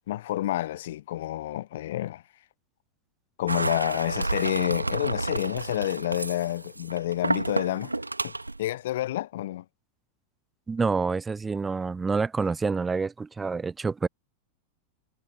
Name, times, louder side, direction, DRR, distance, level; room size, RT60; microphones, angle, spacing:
voice 1, 0.1-2.2 3.4-7.9 8.2-8.3 8.6-9.6, left 14 dB, 55° left, 1.0 m, -29 dB
sound 1, 3.5-8.6, right 2 dB, 85° right, 2.5 m, -30 dB
voice 2, 10.7-14.1, right 4 dB, 15° right, 0.7 m, -27 dB
figure-of-eight pair, 90°, 0 cm